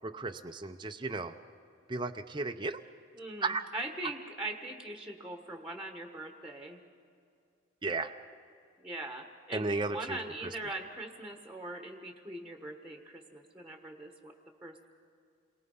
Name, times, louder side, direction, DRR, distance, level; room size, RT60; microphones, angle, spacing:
voice 1, 0.0-1.3 1.9-2.8 3.4-3.6 7.8-8.1 9.5-10.5, right 3 dB, 20° right, 6 dB, 0.6 m, -34 dB
voice 2, 3.1-6.8 8.8-14.3 14.6-14.9, right 2 dB, 5° right, 4 dB, 1.3 m, -41 dB
28.0 x 22.0 x 5.5 m, 2.4 s
head